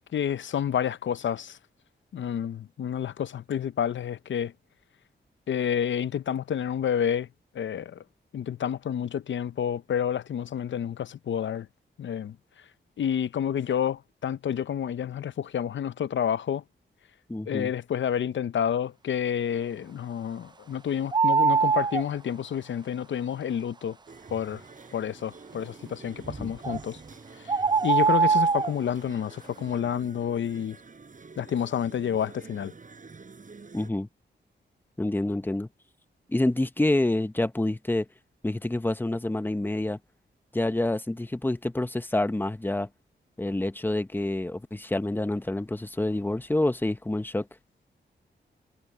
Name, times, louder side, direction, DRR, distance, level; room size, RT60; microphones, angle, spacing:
voice 1, 0.1-1.6 2.1-4.5 5.5-7.3 7.5-8.0 8.3-11.7 12.0-12.4 13.0-16.6 17.5-24.0 24.3-24.6 24.9-27.0 27.4-27.6 27.8-30.8 31.4-32.7, left 9 dB, 80° left, 0.6 m, -29 dB
voice 2, 17.3-17.7 26.4-26.5 33.7-34.1 35.0-35.7 36.3-38.1 38.4-40.0 40.5-42.9 43.4-47.5, left 1 dB, 10° left, 0.9 m, -27 dB
sound 1, 21.1-22.0 26.6-26.8 27.5-28.7, right 5 dB, 25° right, 0.4 m, -22 dB
sound 2, 24.1-33.9, right 4 dB, 45° right, 7.1 m, -47 dB
wide cardioid pair, 105°, 19 cm